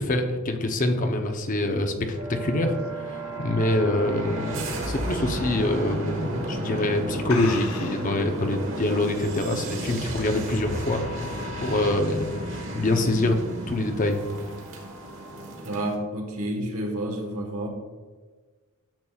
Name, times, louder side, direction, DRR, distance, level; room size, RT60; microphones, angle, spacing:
voice 1, 0.0-11.0 11.3-12.3 12.5-13.4 13.7-14.2, left 2 dB, 40° left, 5 dB, 0.7 m, -25 dB
sound 1, 1.1-4.2 4.7-5.0 5.3-5.4 6.3-6.5 6.8-6.9 7.3-8.2, left 5 dB, 80° left, 0.8 m, -38 dB
sound 2, 2.1-16.0, right 1 dB, 60° right, 1.4 m, -33 dB
voice 2, 15.6-17.7, right 1 dB, 80° right, 1 dB, 1.4 m, -30 dB
10.5 x 7.2 x 2.4 m, 1.4 s
head